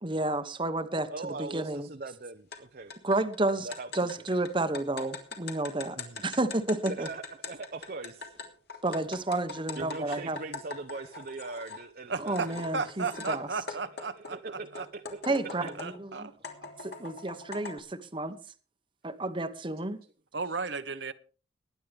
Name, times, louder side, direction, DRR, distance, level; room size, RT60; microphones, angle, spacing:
voice 1, 0.0-1.9 3.0-3.7 3.9-7.1 8.8-10.4 12.2-13.5 15.3-16.3 16.8-18.4 19.0-20.0, right 2 dB, 25° right, 1.0 m, -31 dB
voice 2, 1.1-2.9 3.6-4.0 6.0-6.2 6.9-8.4 8.7-8.8 9.8-12.8 13.3-15.8 16.1-16.2 17.3-17.4 20.4-20.6, right 3 dB, 50° right, 0.7 m, -41 dB
sound 1, 2.5-2.6 2.9-11.8 12.3-13.4 13.7-16.0 16.4-17.8, left 4 dB, 60° left, 3.1 m, -42 dB
voice 3, 12.1-14.4 14.7-14.8 15.8-16.3 20.3-21.1, right 4 dB, 70° right, 1.1 m, -34 dB
21.5 x 10.5 x 3.5 m
head